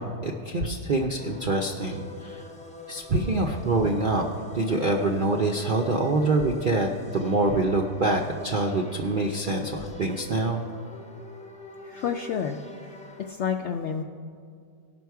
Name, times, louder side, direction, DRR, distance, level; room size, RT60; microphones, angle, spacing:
voice 1, 0.0-2.4 2.9-4.2 4.5-10.6, right 2 dB, 60° right, 1 dB, 0.5 m, -25 dB
sound 1, 1.2-13.3, left 2 dB, 10° left, 0.5 m, -44 dB
voice 2, 11.8-12.6 13.3-14.0, left 7 dB, 75° left, 4 dB, 0.6 m, -29 dB
18.0 x 6.1 x 4.6 m, 2.2 s
omnidirectional pair, 1.7 m